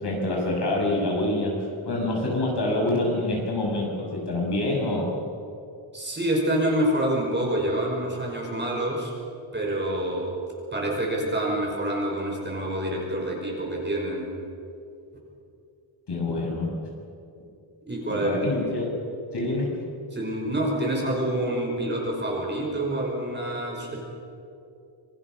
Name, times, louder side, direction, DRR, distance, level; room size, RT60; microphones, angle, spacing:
voice 1, 0.0-5.1 16.1-16.7 18.1-18.9 19.3-19.7, left 1 dB, 55° left, -1 dB, 6.5 m, -26 dB
voice 2, 5.9-9.1 9.5-10.4 10.7-14.3 17.8-18.4 18.7-18.8 20.1-24.0, right 1 dB, 20° right, -2 dB, 5.4 m, -27 dB
26.5 x 24.0 x 6.4 m, 2.6 s
wide cardioid pair, 170°, 49 cm